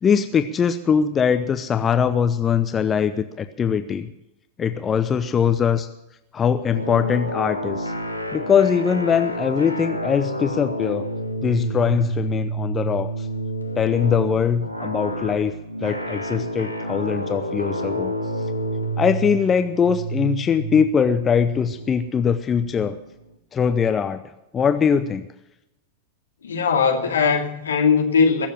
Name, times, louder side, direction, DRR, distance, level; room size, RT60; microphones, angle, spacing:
voice 1, 0.0-4.1 4.6-5.9 6.3-7.9 8.3-11.1 11.4-13.3 13.8-15.5 15.8-18.1 19.0-23.0 23.5-24.2 24.5-25.3, left 7 dB, 20° left, 0.8 m, -21 dB
sound 1, 6.7-23.2, right 1 dB, 90° left, 1.4 m, -29 dB
voice 2, 26.4-28.5, left 5 dB, 70° left, 2.4 m, -19 dB
22.0 x 7.4 x 7.5 m
figure-of-eight pair, 90°, 0 cm